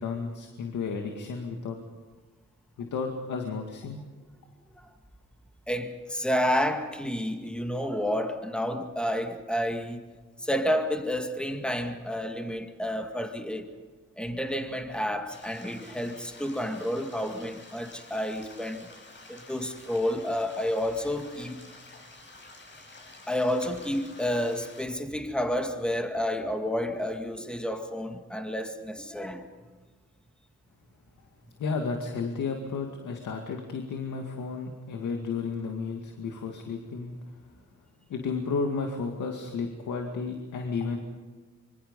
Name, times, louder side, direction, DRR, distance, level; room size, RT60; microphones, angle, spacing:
voice 1, 0.0-1.8 2.8-4.0 31.6-37.1 38.1-41.0, left 4 dB, 85° left, 2.2 m, -32 dB
voice 2, 5.7-10.0 10.4-13.7 14.2-18.9 19.3-21.6 23.3-29.5, equal, 5° left, 2.1 m, -30 dB
sound 1, 15.3-24.8, left 2 dB, 40° left, 6.1 m, -50 dB
26.0 x 24.5 x 5.4 m
cardioid pair, 105°, 30 cm